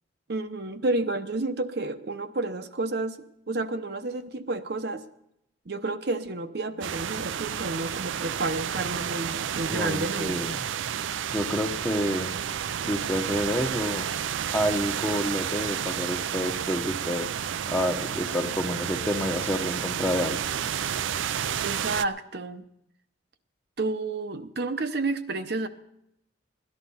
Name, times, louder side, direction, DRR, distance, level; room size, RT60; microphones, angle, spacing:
voice 1, 0.3-3.2 3.5-5.0 5.7-10.4 21.6-22.6 23.8-25.7, right 2 dB, 55° right, 8 dB, 0.8 m, -30 dB
sound 1, 6.8-22.0, right 9 dB, 75° right, 0.4 m, -31 dB
voice 2, 9.7-10.6 11.3-12.3 12.8-14.1 14.5-17.3 17.7-20.5, equal, 10° left, 5 dB, 1.0 m, -29 dB
17.5 x 11.5 x 5.5 m, 0.79 s
head